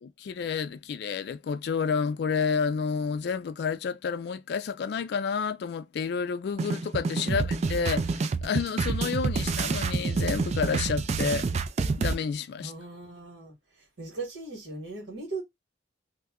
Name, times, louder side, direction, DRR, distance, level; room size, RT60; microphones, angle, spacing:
voice 1, 0.0-11.5 12.0-12.7, left 6 dB, 60° left, 0.3 m, -30 dB
sound 1, 6.6-12.1, right 4 dB, 35° right, 0.3 m, -28 dB
voice 2, 12.6-15.4, right 3 dB, 75° right, 1.5 m, -39 dB
2.7 x 2.2 x 3.6 m
head